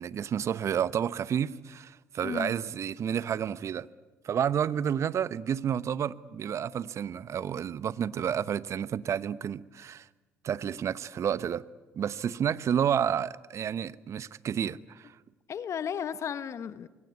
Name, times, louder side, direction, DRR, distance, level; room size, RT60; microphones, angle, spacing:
voice 1, 0.0-3.9 4.2-10.1 10.4-11.6 11.9-15.1, right 8 dB, 55° right, 1.0 m, -30 dB
voice 2, 2.2-2.6 15.5-16.9, left 8 dB, 55° left, 1.3 m, -34 dB
26.0 x 23.0 x 9.4 m
hypercardioid pair, 55°, 6 cm